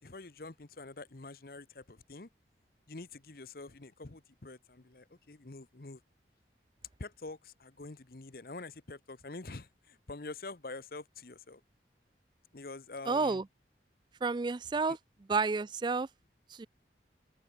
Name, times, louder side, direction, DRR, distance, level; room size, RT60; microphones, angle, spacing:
voice 1, 0.0-2.3 2.9-6.0 7.0-11.6 12.5-13.4 14.9-15.0, left 3 dB, 55° left, 1.0 m, -46 dB
voice 2, 13.1-13.4 14.2-15.0 15.3-16.1 16.5-16.7, right 4 dB, 25° right, 0.4 m, -30 dB
open air
head